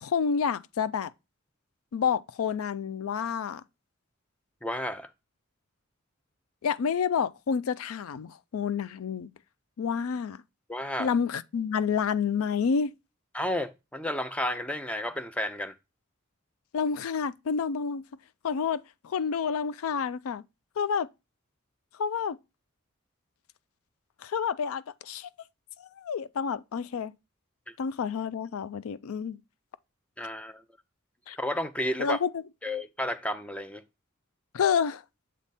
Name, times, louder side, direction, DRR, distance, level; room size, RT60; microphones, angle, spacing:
voice 1, 0.0-1.1 1.9-3.6 6.6-9.3 9.8-10.4 11.0-12.9 16.7-18.0 18.4-20.4 20.8-21.1 22.0-22.4 24.2-25.3 25.8-27.1 27.8-29.4 31.3-31.4 32.0-32.4 34.5-35.0, left 6 dB, 90° left, 0.4 m, -29 dB
voice 2, 4.6-5.1 10.7-11.1 13.3-15.7 30.2-30.6 31.3-32.2 32.6-33.8, left 1 dB, 5° left, 0.5 m, -32 dB
7.4 x 3.5 x 4.0 m
head